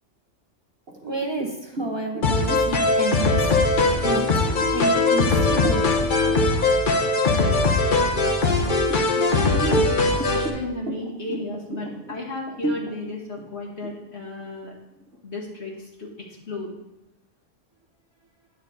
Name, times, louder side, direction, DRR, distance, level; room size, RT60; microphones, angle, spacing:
sound 1, 0.9-6.0 6.4-6.7 7.1-7.9 8.5-15.2, right 2 dB, 50° right, 1.4 m, -36 dB
voice 1, 1.0-3.3 4.0-4.4 4.7-5.9, right 2 dB, 25° right, 2 dB, 0.8 m, -30 dB
sound 2, 2.2-10.5, left 3 dB, 45° left, 1.1 m, -20 dB
voice 2, 9.2-14.7 15.2-16.7, left 1 dB, 60° left, -3 dB, 1.7 m, -33 dB
9.9 x 4.1 x 6.3 m, 0.92 s
omnidirectional pair, 1.3 m